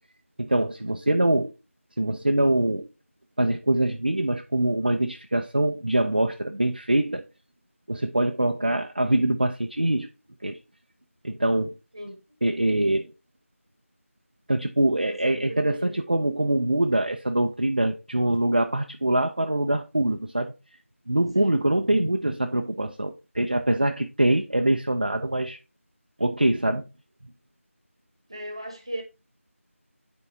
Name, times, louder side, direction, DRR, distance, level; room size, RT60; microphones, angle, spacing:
voice 1, 0.4-1.5 2.0-2.9 3.4-7.2 7.9-10.1 10.4-10.6 11.2-11.7 12.4-13.1 14.5-20.5 21.1-25.6 26.2-26.8, right 1 dB, 40° right, 0.5 m, -24 dB
voice 2, 15.0-16.1 21.3-21.6 28.3-29.0, right 1 dB, 25° right, 1.1 m, -37 dB
9.8 x 4.5 x 2.6 m
figure-of-eight pair, 180°, 8 cm